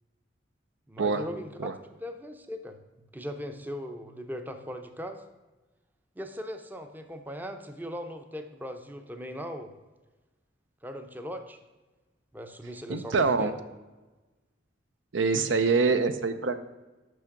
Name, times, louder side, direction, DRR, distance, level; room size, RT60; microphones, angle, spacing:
voice 1, 0.9-1.5 2.0-2.8 3.1-5.2 6.2-9.7 10.8-11.6 12.3-13.6, equal, 10° right, 7 dB, 0.6 m, -39 dB
voice 2, 12.9-13.5 15.1-16.6, right 4 dB, 75° right, 10 dB, 0.6 m, -25 dB
6.2 x 6.0 x 5.8 m, 1.2 s
head